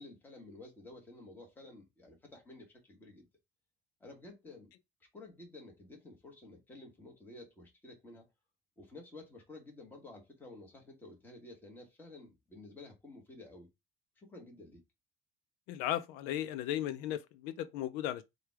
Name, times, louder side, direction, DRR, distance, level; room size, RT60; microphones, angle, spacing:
voice 1, 0.0-3.3 4.0-4.7 5.1-8.3 8.8-13.7 14.2-14.8, left 2 dB, 15° left, 1.3 m, -52 dB
voice 2, 15.7-18.2, left 12 dB, 85° left, 0.5 m, -36 dB
4.9 x 2.3 x 4.5 m
cardioid pair, 165°, 15 cm